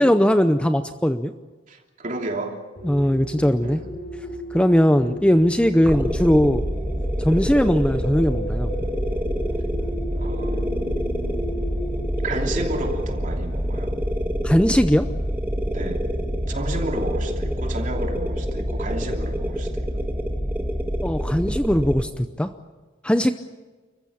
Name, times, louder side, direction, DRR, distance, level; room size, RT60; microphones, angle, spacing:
voice 1, 0.0-1.3 2.8-3.8 4.5-6.6 7.2-8.7 14.4-15.1 21.0-22.5 23.0-23.3, equal, 5° left, 9 dB, 0.6 m, -19 dB
voice 2, 1.7-2.7 3.6-3.9 10.1-10.8 12.2-13.9 15.7-16.1 16.5-19.9, right 2 dB, 40° right, 3 dB, 3.1 m, -32 dB
sound 1, 2.8-13.8, equal, 65° left, 7.8 m, -35 dB
sound 2, 5.8-22.0, equal, 10° right, 1.7 m, -26 dB
30.0 x 15.0 x 8.7 m, 1.3 s
head